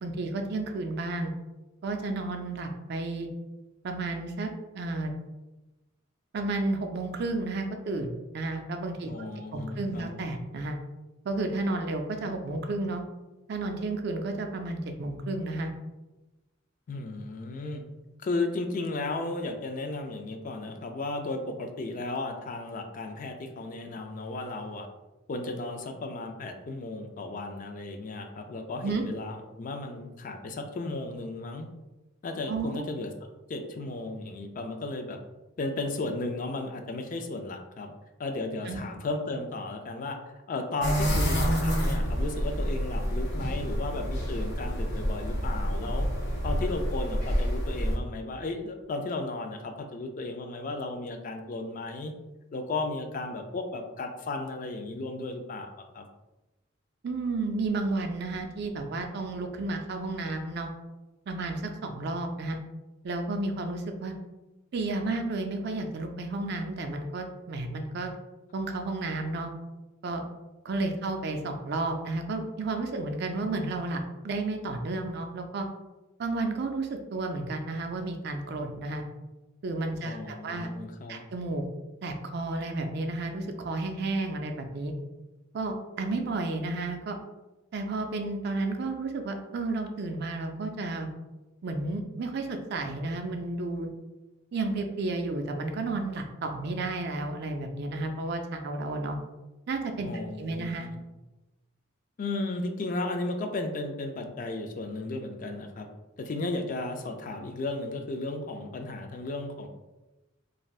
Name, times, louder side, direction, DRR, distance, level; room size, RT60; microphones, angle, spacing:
voice 1, 0.0-1.3 1.8-3.3 3.8-4.5 4.7-5.1 6.3-10.8 11.2-13.0 13.5-15.7 28.8-29.0 32.5-32.7 38.7-38.8 57.0-60.7 61.3-62.6 63.0-64.1 64.7-68.1 68.5-69.5 70.0-70.2 70.6-75.7 76.2-79.0 79.6-80.7 81.1-81.6 82.0-84.9 85.5-87.2 87.7-91.1 91.6-93.9 94.5-99.2 99.7-100.9, right 2 dB, 55° right, 5 dB, 0.4 m, -32 dB
voice 2, 9.1-10.1 16.9-17.8 18.2-24.9 25.3-31.7 32.2-33.1 33.5-35.2 35.6-37.9 38.2-40.2 40.5-46.1 46.4-52.1 52.5-55.7 55.9-56.1 80.0-81.2 100.0-101.0 102.2-105.9 106.2-109.7, left 2 dB, 45° left, 5 dB, 0.3 m, -34 dB
sound 1, 40.8-48.0, equal, 65° left, 1.2 m, -28 dB
3.2 x 2.6 x 2.3 m, 1.1 s
head